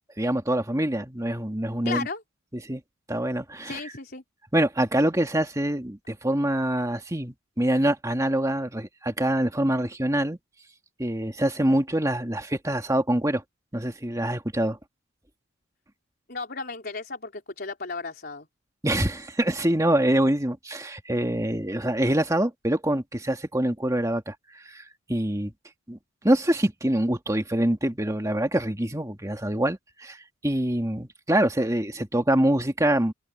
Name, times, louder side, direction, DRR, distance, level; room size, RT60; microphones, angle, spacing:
voice 1, 0.2-2.1 2.5-2.8 3.1-3.8 4.5-10.4 11.0-13.4 13.7-14.8 18.8-25.5 25.9-26.0 26.2-30.2 30.4-33.1, right 1 dB, 15° right, 1.8 m, -25 dB
voice 2, 1.8-2.2 3.6-4.2 16.3-18.5, left 4 dB, 50° left, 4.2 m, -34 dB
head